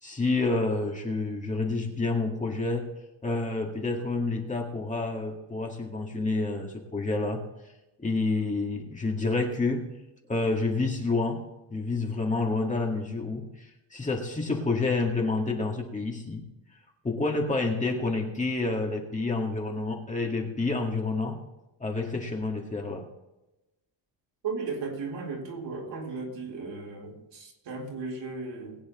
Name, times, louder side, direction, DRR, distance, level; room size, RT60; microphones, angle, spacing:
voice 1, 0.0-2.9 3.2-7.4 8.0-9.9 10.3-16.4 17.0-21.4 21.8-23.1, left 3 dB, 15° left, 1.9 m, -29 dB
voice 2, 24.4-28.8, right 4 dB, 65° right, 4.1 m, -35 dB
21.0 x 9.4 x 3.1 m
cardioid pair, 170°, 46 cm